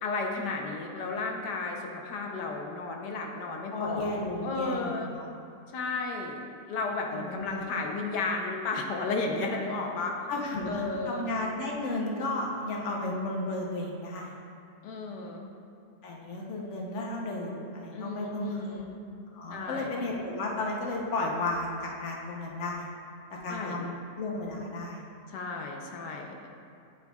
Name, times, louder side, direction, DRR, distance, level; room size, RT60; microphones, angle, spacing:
voice 1, 0.0-4.1 4.4-5.1 5.7-10.2 10.7-11.3 14.8-15.5 17.9-18.9 19.5-20.0 23.5-23.9 25.3-26.5, left 3 dB, 80° left, 1 dB, 1.3 m, -33 dB
voice 2, 3.7-5.2 7.1-7.6 10.3-14.3 16.0-18.8 19.3-22.9 23.3-25.1, left 2 dB, 50° left, -1 dB, 1.0 m, -33 dB
9.6 x 4.9 x 2.3 m, 2.7 s
omnidirectional pair, 1.8 m